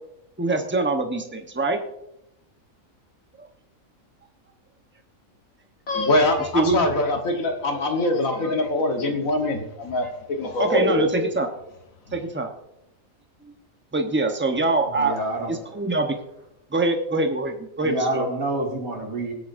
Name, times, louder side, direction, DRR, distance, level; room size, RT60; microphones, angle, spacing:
voice 1, 0.4-1.8 6.4-6.9 10.6-11.5 12.1-12.5 13.4-13.5 13.9-15.2 15.5-16.2 16.7-18.3, right 2 dB, 10° right, 4 dB, 0.9 m, -24 dB
voice 2, 5.9-11.3, left 2 dB, 75° left, 4 dB, 1.8 m, -23 dB
voice 3, 15.0-15.5 17.8-19.3, right 2 dB, 90° right, -1 dB, 3.2 m, -27 dB
21.5 x 8.5 x 2.6 m, 0.86 s
omnidirectional pair, 1.4 m